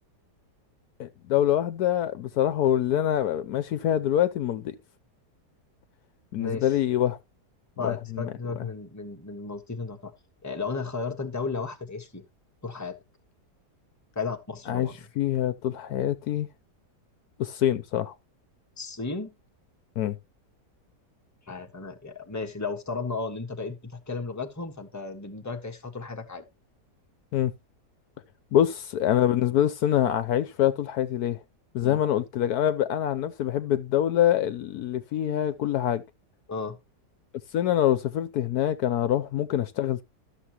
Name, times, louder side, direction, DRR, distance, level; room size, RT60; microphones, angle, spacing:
voice 1, 1.0-4.8 6.3-7.2 7.8-8.3 14.7-14.9 15.2-16.5 17.4-18.1 20.0-20.2 27.3-27.5 28.5-31.4 31.7-36.0 37.5-40.0, left 11 dB, 70° left, 1.1 m, -25 dB
voice 2, 6.4-6.7 7.8-10.1 10.4-12.2 12.6-13.0 14.1-15.1 18.8-19.3 21.5-26.4 31.8-32.0 36.5-36.8, left 4 dB, 10° left, 1.3 m, -34 dB
13.0 x 6.9 x 2.9 m
omnidirectional pair, 1.8 m